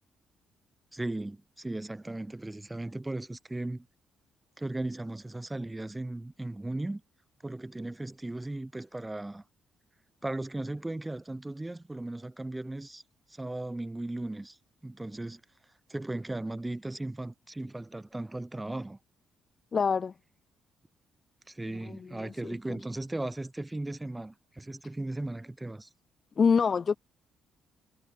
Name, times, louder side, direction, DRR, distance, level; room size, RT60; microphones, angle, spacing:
voice 1, 0.9-3.9 4.6-7.0 7.4-9.4 10.2-13.0 13.3-14.6 14.8-15.4 15.9-19.0 21.5-25.9, right 2 dB, 15° right, 2.1 m, -37 dB
voice 2, 19.7-20.1 21.9-22.3 22.7-22.8 26.4-27.0, left 6 dB, 45° left, 0.3 m, -26 dB
supercardioid pair, 65°, 0 cm